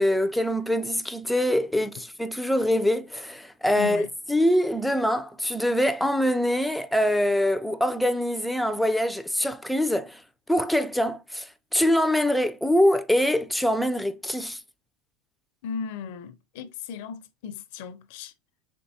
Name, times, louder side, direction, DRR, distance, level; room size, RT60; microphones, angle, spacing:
voice 1, 0.0-10.2 10.5-14.6, left 1 dB, ahead, 0.3 m, -24 dB
voice 2, 3.7-4.1 15.6-18.3, left 6 dB, 65° left, 0.6 m, -36 dB
4.4 x 3.3 x 2.7 m
supercardioid pair, 135°, 0 cm